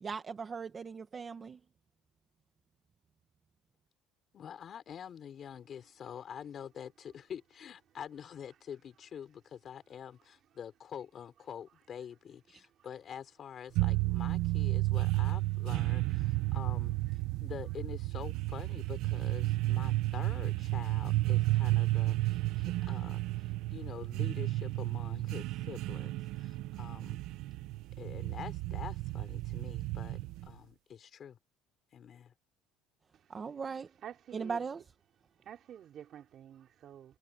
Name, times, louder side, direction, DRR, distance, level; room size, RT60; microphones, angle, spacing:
voice 1, 0.0-1.6 33.3-33.9 34.3-34.8, right 5 dB, 20° right, 1.2 m, -38 dB
voice 2, 4.3-17.0 17.4-27.2 28.0-31.4 31.9-32.3, left 8 dB, 30° left, 4.2 m, -46 dB
sound 1, 13.8-30.5, right 18 dB, 60° right, 1.0 m, -32 dB
voice 3, 33.1-34.7 35.2-37.2, right 10 dB, 35° right, 3.3 m, -50 dB
cardioid pair, 165°, 0 cm